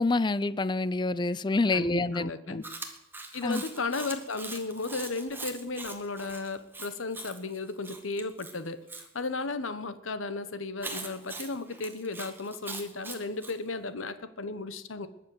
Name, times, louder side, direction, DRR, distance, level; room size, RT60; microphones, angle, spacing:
voice 1, 0.0-2.6 3.4-3.6, left 3 dB, 25° left, 0.4 m, -27 dB
voice 2, 1.7-2.6 3.3-15.1, left 3 dB, 90° left, 1.1 m, -35 dB
Chewing mastication, 2.6-9.1 10.8-13.6, right 3 dB, 10° right, 1.8 m, -42 dB
21.0 x 7.5 x 7.8 m
head